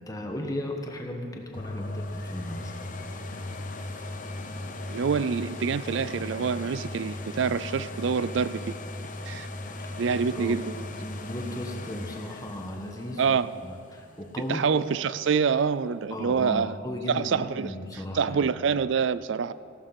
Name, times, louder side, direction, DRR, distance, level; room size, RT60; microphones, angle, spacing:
voice 1, 0.0-2.7 9.8-10.0 10.3-10.6 11.0-13.4 13.6-14.7 16.1-18.5, left 1 dB, 15° left, 2 dB, 1.3 m, -36 dB
sound 1, 1.5-15.2 15.8-15.9, left 2 dB, 40° left, 0.9 m, -38 dB
voice 2, 4.9-8.7 9.2-9.5 10.0-10.7 13.2-13.5 14.5-16.8 17.1-17.7 18.1-19.5, right 6 dB, 60° right, 16 dB, 0.4 m, -26 dB
16.5 x 12.0 x 5.9 m, 2.4 s
head